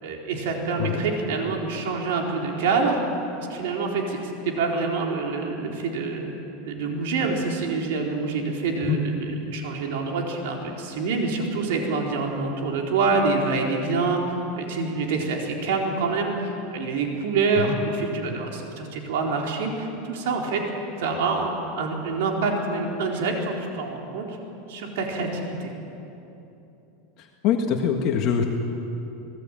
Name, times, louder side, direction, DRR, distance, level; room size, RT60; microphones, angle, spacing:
voice 1, 0.0-3.0 3.4-6.3 6.6-20.6 21.0-24.4 24.7-25.7, right 4 dB, 75° right, 0 dB, 4.3 m, -26 dB
voice 2, 27.2-28.4, left 8 dB, 45° left, 2 dB, 1.7 m, -24 dB
26.0 x 19.5 x 9.2 m, 3.0 s
supercardioid pair, 160°, 0 cm